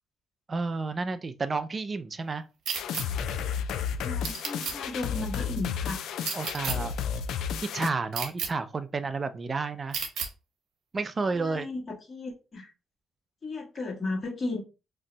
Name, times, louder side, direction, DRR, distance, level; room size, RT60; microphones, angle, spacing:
voice 1, 0.5-2.4 6.3-6.9 7.7-10.0 10.9-11.7, right 4 dB, 35° right, 0.3 m, -31 dB
sound 1, 2.7-7.9, left 7 dB, 80° left, 0.3 m, -32 dB
sound 2, 2.7-3.0 4.2-4.7 6.2-6.8 8.1-8.5 9.9-10.3, right 6 dB, 75° right, 0.7 m, -32 dB
voice 2, 4.0-6.0 11.3-12.7 13.4-14.6, left 3 dB, 35° left, 1.3 m, -35 dB
2.6 x 2.1 x 3.8 m
cardioid pair, 90°, 0 cm